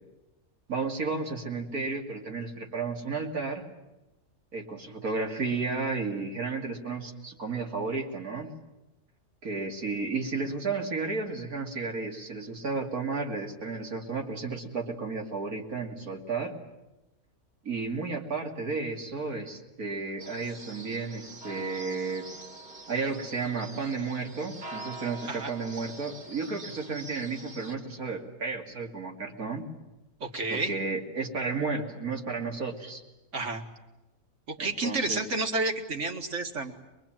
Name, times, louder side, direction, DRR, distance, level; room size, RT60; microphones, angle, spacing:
voice 1, 0.7-3.7 4.5-8.5 9.4-16.6 17.6-22.3 22.9-29.7 30.5-33.0 34.6-35.2, right 4 dB, 80° right, 1 dB, 3.1 m, -33 dB
sound 1, 20.2-27.7, right 2 dB, 35° right, 2.1 m, -45 dB
voice 2, 30.2-30.7 33.3-33.6 34.5-36.7, right 2 dB, 55° right, 4 dB, 2.2 m, -30 dB
23.0 x 23.0 x 9.0 m, 1.0 s
omnidirectional pair, 1.5 m